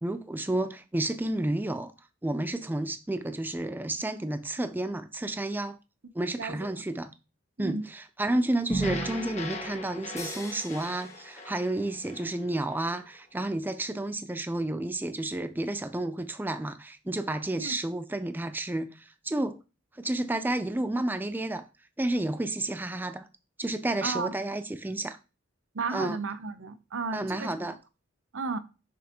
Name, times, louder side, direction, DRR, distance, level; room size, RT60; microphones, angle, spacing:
voice 1, 0.0-1.9 2.2-5.8 6.1-7.1 7.6-19.6 19.9-21.7 22.0-23.2 23.6-25.2 25.9-26.2 27.1-27.8, right 1 dB, 10° right, 0.4 m, -31 dB
sound 1, 8.7-13.0, right 1 dB, 35° left, 1.3 m, -36 dB
sound 2, 10.2-12.3, left 2 dB, 15° left, 0.8 m, -45 dB
voice 2, 24.0-24.3 25.7-27.5 28.3-28.6, right 4 dB, 75° right, 0.7 m, -33 dB
6.6 x 6.3 x 2.9 m
head